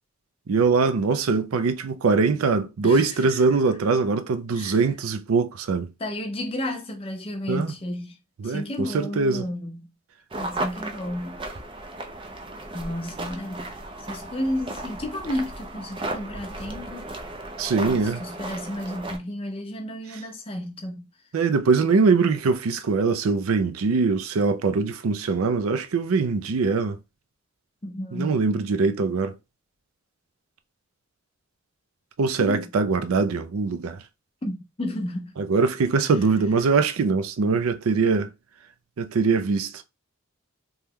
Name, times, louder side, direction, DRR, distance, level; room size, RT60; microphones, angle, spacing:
voice 1, 0.5-5.9 7.5-7.7 8.4-9.5 17.6-18.2 21.3-27.0 28.1-29.3 32.2-34.0 35.4-38.3 39.0-39.8, right 4 dB, 85° right, 0.5 m, -22 dB
voice 2, 2.8-3.4 4.5-4.8 6.0-8.2 8.4-9.9 10.4-11.4 12.7-13.7 14.0-17.1 17.8-21.1 27.8-28.4 32.4-32.7 34.4-35.3 35.8-35.9, left 1 dB, 25° left, 0.6 m, -32 dB
sound 1, 10.3-19.2, right 2 dB, 25° right, 0.4 m, -35 dB
2.9 x 2.2 x 3.5 m
head